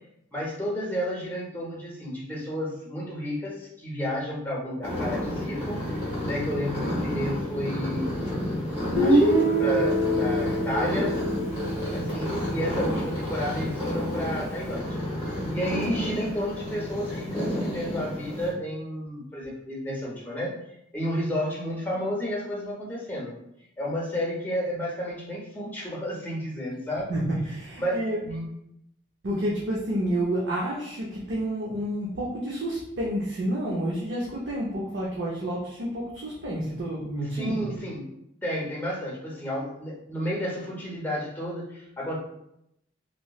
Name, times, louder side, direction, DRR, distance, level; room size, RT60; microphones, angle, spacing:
voice 1, 0.3-8.4 9.0-11.1 11.9-20.5 20.9-23.3 23.8-27.2 27.8-28.4 37.3-38.1 38.4-42.2, equal, 10° left, -4 dB, 0.7 m, -31 dB
sound 1, 4.8-18.5, left 1 dB, 30° right, 1.4 m, -31 dB
Guitar, 8.9-12.9, right 1 dB, 10° right, 1.1 m, -25 dB
voice 2, 27.1-28.2 29.2-37.7, right 1 dB, 70° right, -4 dB, 0.6 m, -29 dB
3.0 x 2.9 x 2.3 m, 0.79 s
head